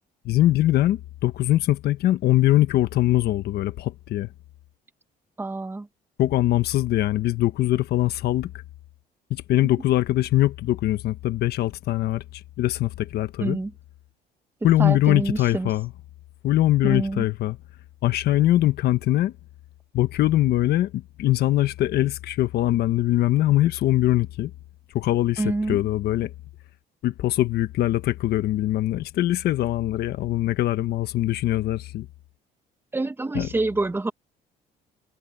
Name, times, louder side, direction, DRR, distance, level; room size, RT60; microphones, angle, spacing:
voice 1, 0.2-4.3 6.2-8.5 9.3-12.2 12.6-13.6 14.6-15.9 16.4-17.6 18.0-19.3 19.9-24.5 24.9-26.3 27.0-32.1 33.3-33.5, left 14 dB, 70° left, 1.3 m, -22 dB
voice 2, 5.4-5.9 13.4-13.7 14.8-15.7 16.8-17.2 25.4-25.8 32.9-34.1, right 2 dB, 15° right, 1.6 m, -26 dB
cardioid pair, 110°, 17 cm